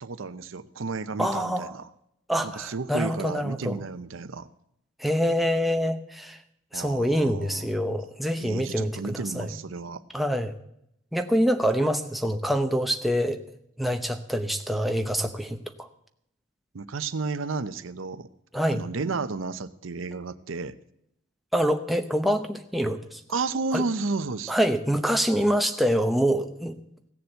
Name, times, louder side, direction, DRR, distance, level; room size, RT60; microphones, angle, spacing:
voice 1, 0.0-1.9 2.4-4.5 6.7-7.7 8.4-10.0 16.7-18.3 18.7-20.7 23.3-24.5, right 4 dB, 90° right, 13 dB, 0.7 m, -32 dB
voice 2, 1.2-1.7 2.3-3.8 5.0-6.4 6.7-9.6 10.1-10.5 11.1-13.4 13.8-15.6 18.5-18.8 21.5-23.2 23.7-23.8 24.5-26.8, equal, ahead, 5 dB, 0.8 m, -25 dB
16.0 x 7.0 x 7.9 m, 0.77 s
head